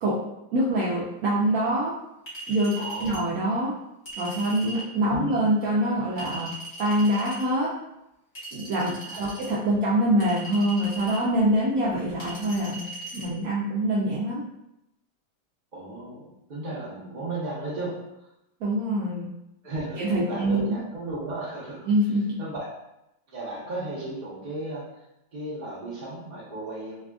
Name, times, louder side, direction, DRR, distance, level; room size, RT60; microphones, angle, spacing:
voice 1, 0.5-1.9 2.5-3.7 4.2-6.5 6.8-7.7 8.5-12.9 13.1-14.4 18.6-19.3 20.0-20.8 21.9-22.2, right 1 dB, 85° right, -6 dB, 0.7 m, -25 dB
Chink clink, 2.3-3.2 4.0-4.9 6.2-7.4 8.3-9.5 10.2-11.2 12.2-13.3, right 1 dB, 45° left, 1.0 m, -39 dB
voice 2, 2.8-3.2 5.2-5.4 9.1-9.4 15.7-18.0 18.2-18.3 19.6-21.8 22.4-22.7 23.3-25.0 25.3-27.0, right 2 dB, 35° right, -6 dB, 0.7 m, -35 dB
3.3 x 2.4 x 2.3 m, 0.87 s
omnidirectional pair, 2.1 m